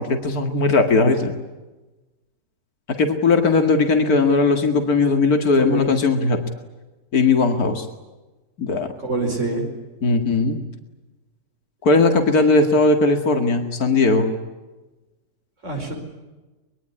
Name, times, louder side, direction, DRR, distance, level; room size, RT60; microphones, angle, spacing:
voice 1, 0.0-1.3 3.0-6.4 7.1-7.9 8.6-8.9 10.0-10.6 11.8-14.3, left 3 dB, 80° left, 6 dB, 2.6 m, -18 dB
voice 2, 5.6-5.9 9.0-9.7 15.6-16.0, right 2 dB, 50° right, 2 dB, 5.2 m, -25 dB
24.0 x 22.0 x 9.9 m, 1.1 s
omnidirectional pair, 1.6 m